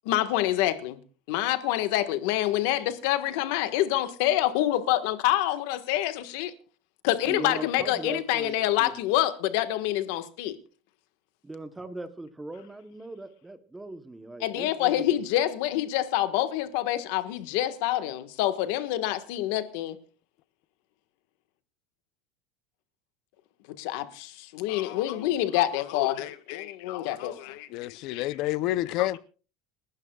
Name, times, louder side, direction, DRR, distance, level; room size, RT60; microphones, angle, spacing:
voice 1, 0.0-1.0 1.3-6.5 7.0-10.6 14.4-20.0 23.8-28.3 29.0-29.2, left 13 dB, 65° left, 1.4 m, -27 dB
voice 2, 7.3-8.9 11.4-14.9, right 2 dB, 10° right, 0.9 m, -39 dB
voice 3, 27.7-29.2, left 15 dB, 50° left, 0.6 m, -28 dB
29.5 x 12.0 x 2.3 m
cardioid pair, 165°, 0 cm